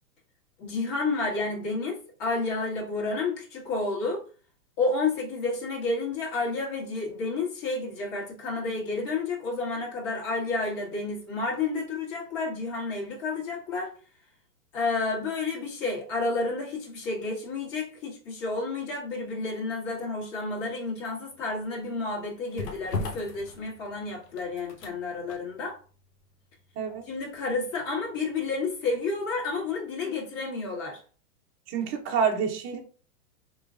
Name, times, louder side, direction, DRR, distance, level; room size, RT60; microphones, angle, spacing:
voice 1, 0.6-4.2 4.8-13.9 14.7-25.8 27.1-31.0, left 3 dB, 40° left, 1.7 m, -30 dB
sound 1, 21.3-29.3 29.6-29.8, left 3 dB, 90° left, 1.0 m, -40 dB
voice 2, 31.7-32.8, right 6 dB, 25° right, 0.8 m, -27 dB
3.8 x 3.1 x 2.5 m
hypercardioid pair, 120°, 46 cm